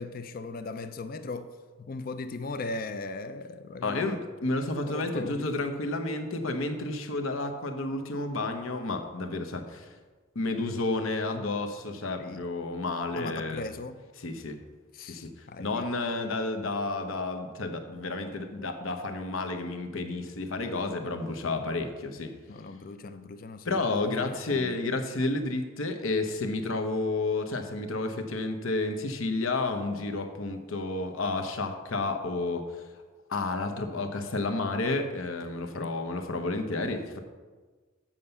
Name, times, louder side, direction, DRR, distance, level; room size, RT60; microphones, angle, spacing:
voice 1, 0.0-4.2 4.9-5.5 12.2-12.5 13.1-14.0 14.9-15.9 22.5-24.8 35.7-36.0, left 3 dB, 45° left, 10 dB, 0.4 m, -39 dB
voice 2, 3.8-4.2 4.4-9.9 10.3-13.6 14.2-14.6 15.0-22.3 23.7-32.8 33.3-37.2, left 2 dB, 75° left, 6 dB, 0.9 m, -31 dB
7.4 x 5.4 x 6.9 m, 1.4 s
head